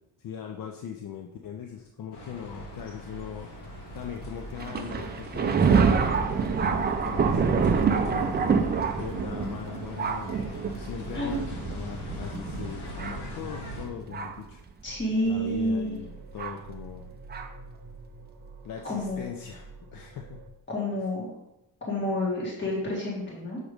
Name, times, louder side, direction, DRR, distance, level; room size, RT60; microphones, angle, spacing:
voice 1, 0.2-3.5 3.9-8.5 9.0-10.3 10.8-14.6 15.2-17.1 18.6-20.4, left 8 dB, 55° left, 3 dB, 0.5 m, -40 dB
sound 1, 2.1-13.9, equal, 70° left, 1.5 m, -41 dB
Thunder, 4.6-14.5 15.3-15.4 16.4-16.5 17.3-17.5, right 5 dB, 25° right, 0.4 m, -27 dB
voice 2, 11.1-11.5 14.8-15.9 18.9-19.2 20.7-21.3 21.9-23.6, left 1 dB, 25° left, -4 dB, 1.6 m, -29 dB
sound 2, 14.9-20.5, right 3 dB, 55° right, 0.8 m, -47 dB
6.4 x 3.0 x 4.9 m, 0.89 s
cardioid pair, 150°, 41 cm